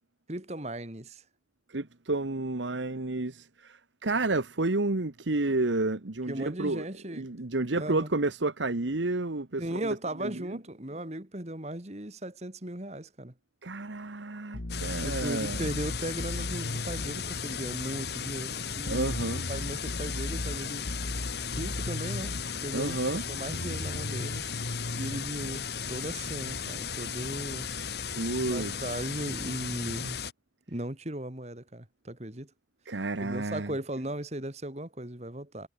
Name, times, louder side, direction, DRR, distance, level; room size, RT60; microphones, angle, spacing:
voice 1, 0.3-1.2 6.3-7.3 7.7-8.1 9.6-13.3 14.8-19.2 19.5-20.9 21.5-23.0 23.3-24.7 24.9-27.7 28.5-30.2 30.7-32.5 33.2-35.7, right 1 dB, 35° right, 2.3 m, -37 dB
voice 2, 1.7-6.8 7.1-10.4 13.6-15.6 18.9-19.5 22.7-23.2 28.1-28.7 32.9-33.7, right 2 dB, 85° right, 1.4 m, -30 dB
sound 1, 14.5-17.1 18.9-22.5 23.5-25.2, left 1 dB, 85° left, 1.5 m, -36 dB
sound 2, 14.7-30.3, left 6 dB, 60° left, 2.9 m, -36 dB
head